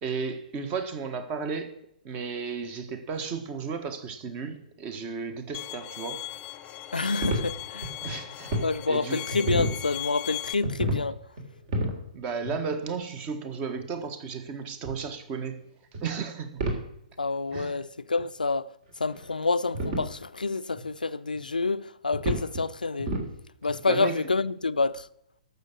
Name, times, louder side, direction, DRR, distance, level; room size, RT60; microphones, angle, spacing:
voice 1, 0.0-1.7 2.0-6.3 8.0-9.2 12.1-15.6 16.0-16.7 17.5-17.8 23.9-24.2, right 5 dB, 30° right, 1.6 m, -34 dB
Bowed string instrument, 5.5-10.5, left 14 dB, 25° left, 0.9 m, -38 dB
voice 2, 6.9-7.9 8.6-11.2 17.2-18.7 19.0-23.1 23.6-25.1, left 3 dB, 85° left, 0.5 m, -28 dB
sound 1, 7.2-8.7 9.1-9.8 10.5-11.0 11.4-12.0 12.4-12.6 13.8-13.9 14.8-15.0 15.9-16.1 16.6-16.8 17.2-17.3 17.5-17.6 18.2-18.3 18.9-19.3 19.7-20.1 20.7-20.9 21.3-21.4 22.1-22.6 23.0-23.3 23.7-23.8, right 1 dB, 45° right, 3.2 m, -30 dB
12.5 x 6.9 x 6.3 m
figure-of-eight pair, 125°, 4 cm